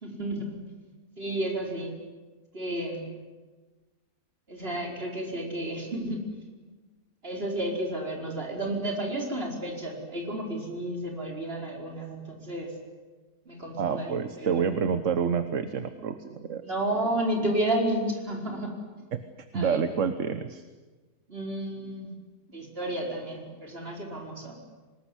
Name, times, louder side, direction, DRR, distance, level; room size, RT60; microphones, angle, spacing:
voice 1, 0.0-0.5 1.2-2.0 2.5-3.1 4.5-6.3 7.2-12.7 13.4-14.7 16.6-18.8 19.5-19.9 21.3-22.1 22.5-24.6, right 1 dB, 35° right, 0 dB, 5.1 m, -31 dB
voice 2, 13.8-16.6 19.5-20.6, right 6 dB, 55° right, 10 dB, 1.4 m, -28 dB
25.0 x 20.5 x 10.0 m, 1.3 s
omnidirectional pair, 1.7 m